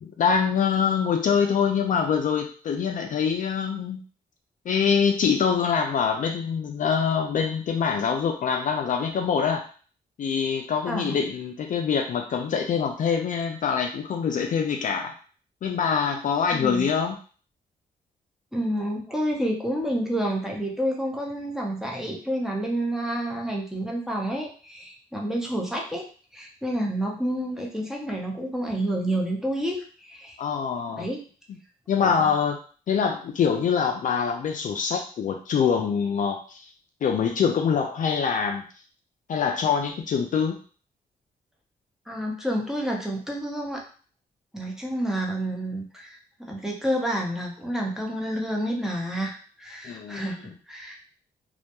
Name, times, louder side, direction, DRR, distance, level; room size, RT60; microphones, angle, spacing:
voice 1, 0.0-4.0 4.7-9.6 10.2-15.1 15.6-17.2 30.4-31.1 31.9-32.6 32.9-36.6 37.0-38.6 39.3-40.6 49.8-50.5, left 6 dB, 55° left, 3 dB, 0.4 m, -24 dB
voice 2, 16.5-16.9 18.5-26.0 26.3-30.4 30.9-31.2 32.0-32.3 42.1-43.8 44.5-46.2 46.5-51.1, right 1 dB, 5° right, -1 dB, 0.7 m, -29 dB
2.2 x 2.1 x 2.9 m, 0.41 s
cardioid pair, 70°, 16 cm